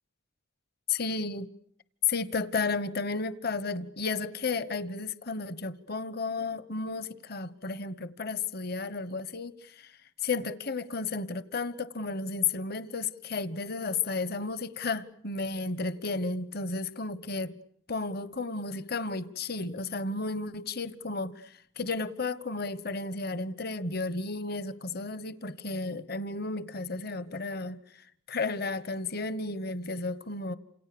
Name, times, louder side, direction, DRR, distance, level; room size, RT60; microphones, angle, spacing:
voice 1, 0.9-1.5 2.1-10.0 10.2-17.5 17.9-30.5, left 3 dB, 50° left, 1.1 m, -33 dB
29.0 x 28.0 x 7.0 m
head